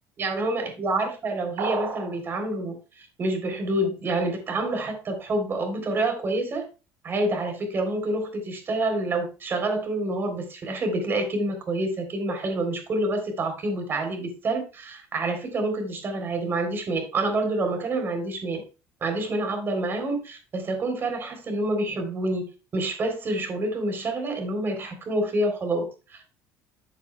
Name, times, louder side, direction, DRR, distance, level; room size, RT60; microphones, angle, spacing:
voice 1, 0.2-6.6 7.0-18.6 19.0-26.3, right 2 dB, 35° right, 5 dB, 3.4 m, -27 dB
sound 1, 1.6-2.2, right 5 dB, 80° right, 3.6 m, -30 dB
12.5 x 7.2 x 2.3 m, 0.31 s
supercardioid pair, 105°, 6 cm